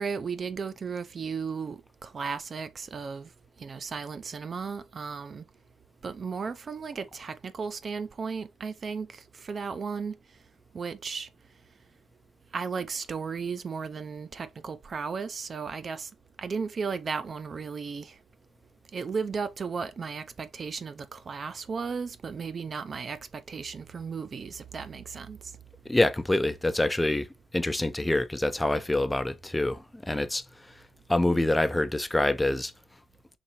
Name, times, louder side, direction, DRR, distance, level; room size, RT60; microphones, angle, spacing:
voice 1, 0.0-3.3 3.6-5.4 6.0-10.2 10.7-11.3 12.5-16.1 16.4-18.2 18.9-25.5, right 5 dB, 40° right, 0.5 m, -35 dB
voice 2, 25.9-27.3 27.5-30.4 31.1-32.7, left 1 dB, 10° left, 0.4 m, -26 dB
4.1 x 3.3 x 3.0 m
supercardioid pair, 75°, 0 cm